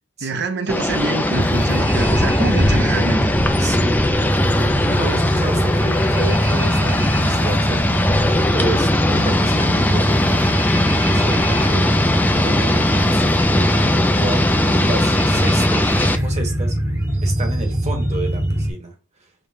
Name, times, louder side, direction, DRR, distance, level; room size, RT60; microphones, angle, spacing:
voice 1, 0.2-3.3, right 3 dB, 60° right, 0.7 m, -25 dB
sound 1, 0.7-16.2, left 1 dB, 10° left, 0.4 m, -20 dB
sound 2, 1.3-18.7, right 1 dB, 15° right, 1.0 m, -21 dB
voice 2, 3.6-10.4 10.7-14.4 14.8-16.8 17.2-18.9, right 2 dB, 35° right, 1.2 m, -31 dB
sound 3, 4.9-15.5, left 2 dB, 30° left, 1.0 m, -33 dB
5.3 x 3.1 x 2.7 m
head